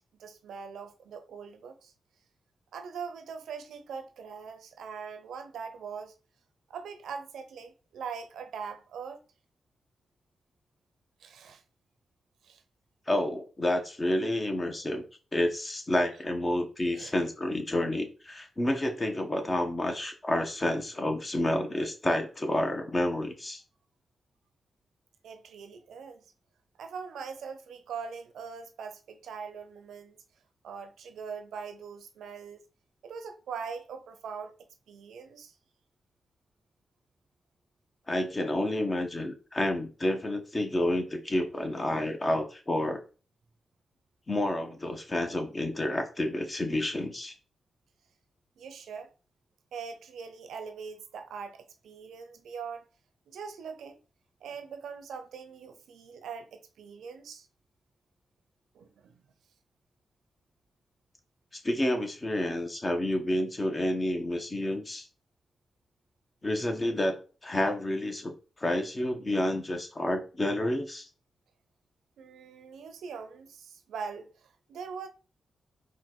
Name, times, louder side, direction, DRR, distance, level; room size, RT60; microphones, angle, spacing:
voice 1, 0.2-1.9 2.7-6.1 6.7-9.2 11.2-11.6 12.4-12.6 16.9-17.1 25.2-26.2 26.8-30.2 30.6-32.6 33.0-34.5 34.9-35.6 48.6-49.1 49.7-52.9 53.3-54.0 54.4-57.5 58.7-59.1 72.2-75.1, right 6 dB, 90° right, 0.6 m, -42 dB
voice 2, 13.1-15.0 15.3-23.6 38.1-43.0 44.3-47.3 61.6-65.0 66.4-67.2 67.4-71.1, left 1 dB, 30° left, 1.1 m, -29 dB
4.3 x 2.4 x 4.4 m
cardioid pair, 65°, 0 cm